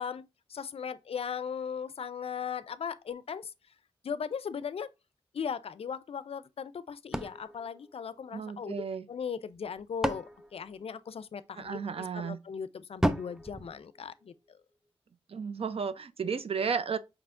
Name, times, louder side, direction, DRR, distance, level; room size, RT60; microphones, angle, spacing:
voice 1, 0.0-3.5 4.0-4.9 5.3-8.8 9.1-14.6, left 7 dB, 65° left, 0.4 m, -38 dB
sound 1, 7.1-8.7 9.5-11.5 13.0-14.6, right 1 dB, 5° right, 0.6 m, -35 dB
voice 2, 8.3-9.0 11.6-12.4 15.3-17.0, right 6 dB, 65° right, 0.5 m, -33 dB
4.8 x 3.4 x 2.5 m
cardioid pair, 60°, 11 cm